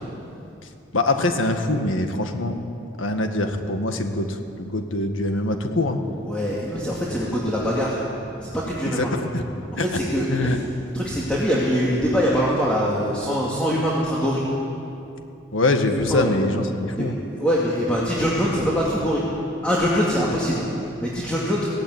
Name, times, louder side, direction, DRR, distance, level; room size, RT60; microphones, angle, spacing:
voice 1, 0.9-2.6 3.0-6.0 8.8-9.4 9.8-9.9 10.3-10.6 15.5-17.2, left 2 dB, 85° left, 5 dB, 1.8 m, -23 dB
voice 2, 6.2-8.0 8.4-9.1 9.8-10.6 10.9-14.4 16.1-16.3 17.0-17.1 17.4-19.2 19.6-20.7 21.0-21.7, equal, 5° left, -6 dB, 2.3 m, -23 dB
17.0 x 16.0 x 9.6 m, 2.7 s
head